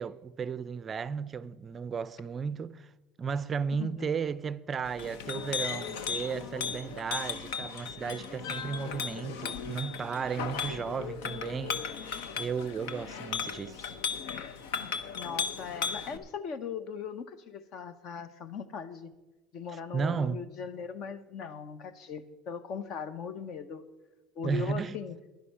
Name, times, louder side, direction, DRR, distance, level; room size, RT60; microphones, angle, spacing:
voice 1, 0.0-2.9 3.2-13.9 19.9-20.4 24.4-25.0, right 6 dB, 30° right, 0.4 m, -34 dB
voice 2, 3.8-4.1 15.1-19.1 19.5-23.8 24.3-25.2, left 6 dB, 55° left, 0.9 m, -39 dB
Chink clink, 4.8-16.2, left 6 dB, 80° left, 0.9 m, -36 dB
11.5 x 10.5 x 5.6 m
supercardioid pair, 110°, 0 cm